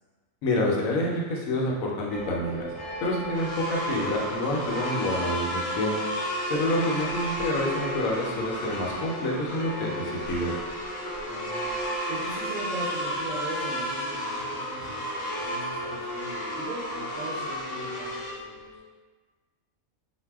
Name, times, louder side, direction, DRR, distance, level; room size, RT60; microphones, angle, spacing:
voice 1, 0.4-2.7 3.0-5.9 6.5-10.5, left 1 dB, 80° left, -2 dB, 1.0 m, -28 dB
sound 1, 2.1-18.8, equal, ahead, 0.6 m, -38 dB
sound 2, 3.3-18.3, equal, 60° left, 0.8 m, -33 dB
voice 2, 11.3-11.7 12.1-18.6, right 1 dB, 75° right, -7 dB, 1.0 m, -39 dB
2.6 x 2.1 x 3.3 m, 1.4 s
omnidirectional pair, 1.5 m